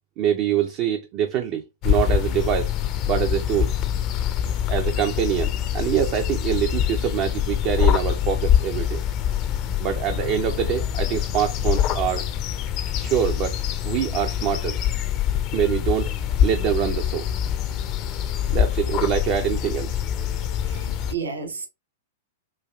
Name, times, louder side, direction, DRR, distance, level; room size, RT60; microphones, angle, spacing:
voice 1, 0.2-2.7 3.1-3.7 4.7-9.0 9.8-12.3 13.0-13.6 13.8-14.8 15.5-16.1 16.4-17.3 18.5-20.0, right 10 dB, 40° right, 0.4 m, -25 dB
sound 1, 1.8-21.1, left 10 dB, 40° left, 0.4 m, -24 dB
voice 2, 20.6-21.7, right 5 dB, 75° right, 0.7 m, -32 dB
3.2 x 2.3 x 2.3 m
figure-of-eight pair, 100°, 0 cm